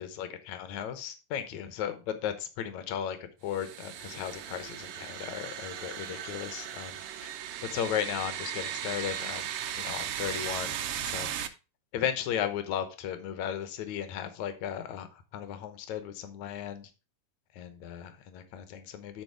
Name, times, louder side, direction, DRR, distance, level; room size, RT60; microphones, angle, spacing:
voice 1, 0.0-7.3 7.6-11.3 11.9-16.9 17.5-19.2, left 9 dB, 70° left, 9 dB, 2.2 m, -36 dB
sound 1, 3.5-11.5, right 10 dB, 75° right, 1.5 m, -37 dB
9.8 x 4.4 x 4.6 m, 0.31 s
omnidirectional pair, 3.5 m